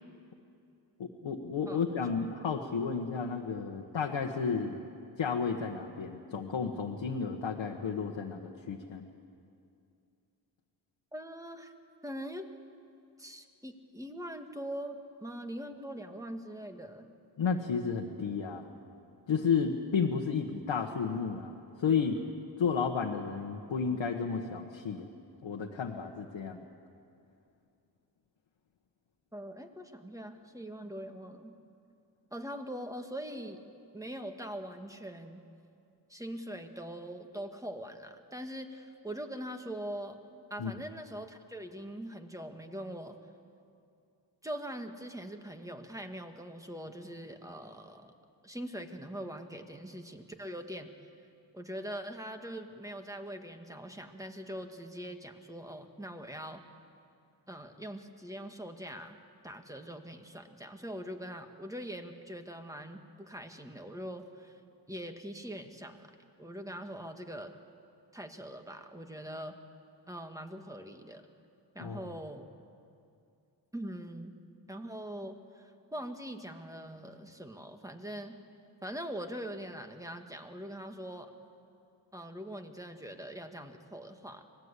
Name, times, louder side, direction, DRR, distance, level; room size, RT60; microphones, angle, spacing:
voice 1, 1.0-4.8 5.2-9.1 17.4-18.7 19.3-22.2 22.6-25.1 25.4-26.7 40.6-40.7 71.8-72.0, left 6 dB, 85° left, 1 dB, 1.5 m, -32 dB
voice 2, 1.7-2.1 11.1-11.7 12.0-12.5 13.2-17.1 29.3-31.5 32.3-33.6 33.9-35.4 36.1-40.2 40.5-43.2 44.4-48.1 48.4-50.9 51.5-56.6 57.5-59.2 59.4-64.6 64.9-66.1 66.4-67.5 68.1-69.6 70.1-71.3 71.7-72.5 73.7-74.3 74.7-78.4 78.8-81.3 82.1-84.4, equal, 5° right, 5 dB, 2.0 m, -42 dB
25.5 x 18.5 x 8.3 m, 2.5 s
cardioid pair, 75°, 44 cm